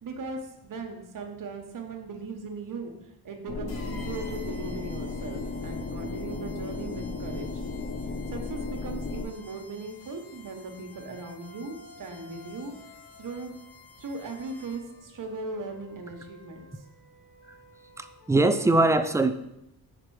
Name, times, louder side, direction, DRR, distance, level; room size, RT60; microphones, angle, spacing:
voice 1, 0.0-2.9 3.2-7.6 8.3-12.7 13.2-13.6 14.0-16.8, right 3 dB, 50° right, 4 dB, 1.0 m, -38 dB
sound 1, 3.5-9.2, left 3 dB, 40° left, 0.6 m, -34 dB
sound 2, 3.7-15.0, left 3 dB, 65° left, 1.2 m, -52 dB
Wind instrument woodwind instrument, 10.9-13.5 14.1-18.7, left 3 dB, 85° left, 2.3 m, -54 dB
voice 2, 18.0-19.3, right 2 dB, 10° right, 9 dB, 0.3 m, -22 dB
5.1 x 4.2 x 4.7 m, 0.84 s
cardioid pair, 85°, 40 cm